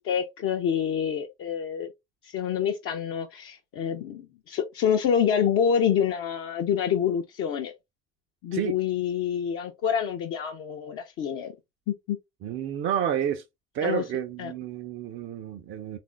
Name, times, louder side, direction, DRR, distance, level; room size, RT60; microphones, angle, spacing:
voice 1, 0.0-1.9 2.2-7.7 8.4-11.5 11.9-12.2 13.8-14.0 14.4-14.5, left 8 dB, 50° left, 0.7 m, -27 dB
voice 2, 12.4-13.4 13.7-16.0, right 9 dB, 45° right, 0.6 m, -30 dB
3.6 x 2.5 x 3.2 m
figure-of-eight pair, 50°, 29 cm